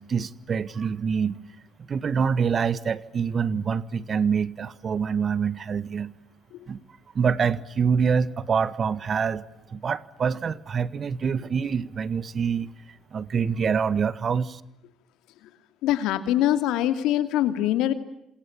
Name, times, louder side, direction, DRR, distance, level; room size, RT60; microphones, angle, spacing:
voice 1, 0.0-1.3 1.9-6.1 6.7-6.8 7.1-9.4 9.7-12.7 13.1-14.6, right 6 dB, 45° right, 1.5 m, -25 dB
voice 2, 15.8-17.9, left 12 dB, 75° left, 2.7 m, -23 dB
28.5 x 27.0 x 7.4 m
hypercardioid pair, 60°, 0 cm